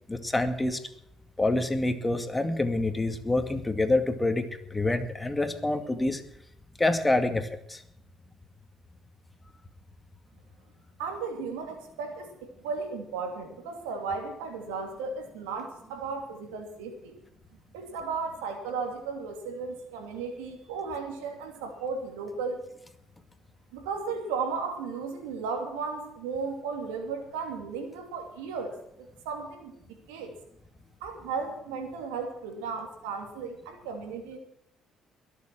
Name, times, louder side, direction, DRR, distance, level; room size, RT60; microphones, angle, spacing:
voice 1, 0.1-0.8 1.4-6.2 6.8-7.8, left 2 dB, 15° left, 8 dB, 2.2 m, -27 dB
voice 2, 11.0-12.3 12.6-17.1 17.7-22.6 23.7-28.7 29.0-29.7 30.1-30.3 31.0-34.4, right 5 dB, 90° right, 5 dB, 2.7 m, -35 dB
22.0 x 7.5 x 6.1 m, 0.77 s
supercardioid pair, 65°, 0 cm